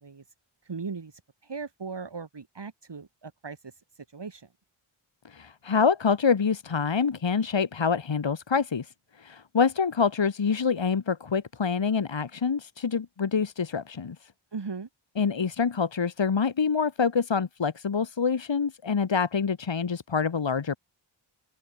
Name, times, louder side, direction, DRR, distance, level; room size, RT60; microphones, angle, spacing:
voice 1, 0.6-4.5 14.5-14.9, right 5 dB, 55° right, 2.8 m, -38 dB
voice 2, 5.2-14.3 15.2-20.8, left 6 dB, 60° left, 1.9 m, -26 dB
open air
wide cardioid pair, 60°, 49 cm